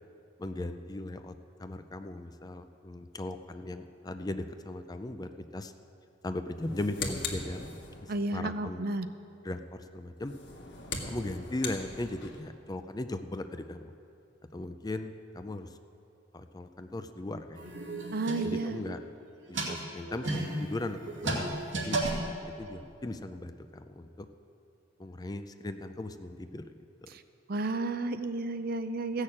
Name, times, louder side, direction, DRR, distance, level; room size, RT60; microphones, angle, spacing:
voice 1, 0.4-1.3 1.6-5.7 6.2-7.7 8.0-8.9 9.4-10.4 11.0-13.9 14.5-15.7 16.3-17.7 18.4-19.0 19.5-22.0 22.6-24.3 25.0-26.7, left 2 dB, 20° left, 8 dB, 0.5 m, -38 dB
sound 1, 6.5-8.2 10.2-12.5, left 3 dB, 65° left, 1.6 m, -39 dB
voice 2, 8.1-9.1 18.1-18.8 27.1-27.2 27.5-29.2, right 2 dB, 55° right, 10 dB, 0.6 m, -32 dB
sound 2, 17.5-18.9 19.3-22.8, right 2 dB, 85° right, 2.3 m, -34 dB
15.0 x 6.4 x 8.6 m, 2.6 s
head